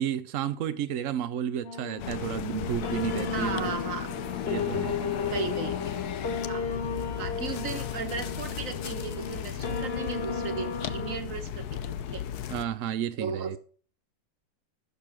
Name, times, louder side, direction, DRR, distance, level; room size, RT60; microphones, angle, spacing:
voice 1, 0.0-3.7 4.5-5.0 12.5-13.6, right 10 dB, 70° right, 0.8 m, -31 dB
sound 1, 1.6-11.2, left 5 dB, 40° left, 1.0 m, -34 dB
sound 2, 2.0-12.7, left 10 dB, 65° left, 1.1 m, -36 dB
voice 2, 3.3-4.1 5.3-6.0 6.5-6.7 7.2-12.2 13.2-13.6, right 5 dB, 45° right, 1.7 m, -36 dB
sound 3, 3.8-10.5, left 3 dB, 85° left, 3.1 m, -46 dB
12.5 x 6.9 x 6.0 m
omnidirectional pair, 2.1 m